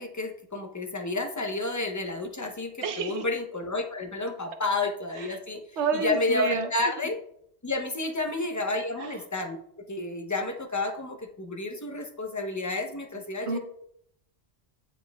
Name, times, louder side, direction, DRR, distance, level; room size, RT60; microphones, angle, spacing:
voice 1, 0.0-7.2 7.6-9.6 9.9-13.6, left 2 dB, 20° left, 3 dB, 0.5 m, -30 dB
voice 2, 2.8-3.2 5.8-6.7 13.4-13.6, right 4 dB, 85° right, 6 dB, 1.0 m, -28 dB
9.4 x 4.8 x 2.2 m, 0.70 s
omnidirectional pair, 1.1 m